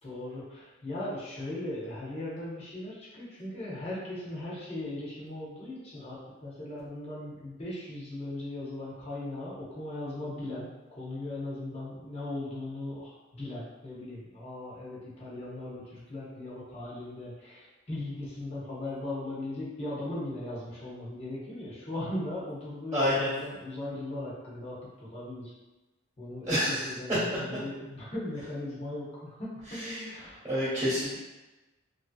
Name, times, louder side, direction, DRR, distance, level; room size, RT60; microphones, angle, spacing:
voice 1, 0.0-25.5 26.2-30.5, left 1 dB, 30° left, -8 dB, 0.9 m, -38 dB
voice 2, 22.9-23.3 26.5-26.9 29.7-30.1 30.4-31.2, equal, 20° right, -11 dB, 1.2 m, -28 dB
3.3 x 2.7 x 2.2 m, 1.1 s
head